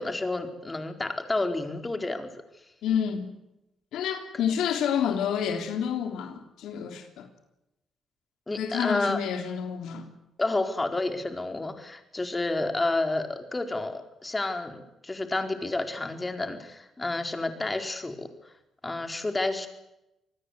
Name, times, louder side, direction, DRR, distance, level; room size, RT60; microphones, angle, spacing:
voice 1, 0.0-2.3 8.5-9.2 10.4-18.3 18.8-19.7, left 2 dB, 20° left, 6 dB, 4.3 m, -30 dB
voice 2, 2.8-3.3 3.9-7.3 8.6-10.1, left 8 dB, 85° left, 6 dB, 3.4 m, -29 dB
27.0 x 20.0 x 8.1 m, 0.89 s
cardioid pair, 90°, 0 cm